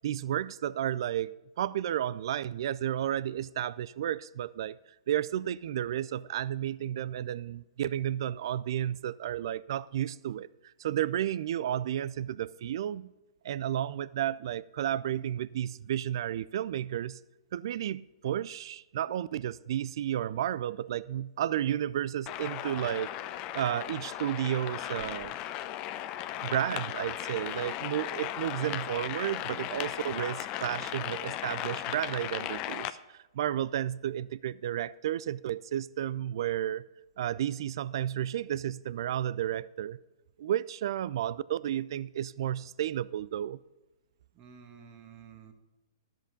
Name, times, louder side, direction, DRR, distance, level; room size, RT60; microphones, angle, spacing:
voice 1, 0.0-4.8 5.1-10.5 10.8-13.1 13.4-17.2 17.5-23.2 23.5-25.3 26.4-36.9 37.2-40.0 40.4-43.6, right 11 dB, 65° right, 0.3 m, -32 dB
sound 1, 22.3-32.9, left 13 dB, 35° left, 0.6 m, -36 dB
voice 2, 44.3-45.5, right 7 dB, 35° right, 1.6 m, -51 dB
12.0 x 7.6 x 5.2 m
hypercardioid pair, 130°, 3 cm